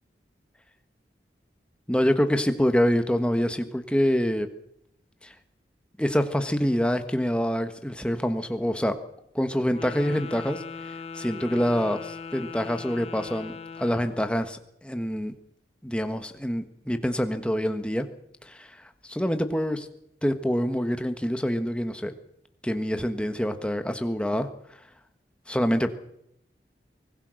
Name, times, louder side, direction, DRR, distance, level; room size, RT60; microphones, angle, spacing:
voice 1, 1.9-4.5 5.2-5.3 6.0-9.0 9.3-10.6 11.1-15.3 15.8-18.1 18.5-18.7 19.1-19.9 20.2-22.1 22.6-24.5 25.5-25.9, equal, 5° left, 8 dB, 1.4 m, -26 dB
Wind instrument woodwind instrument, 9.7-14.3, left 5 dB, 35° left, 1.2 m, -39 dB
24.5 x 19.5 x 6.5 m, 0.78 s
head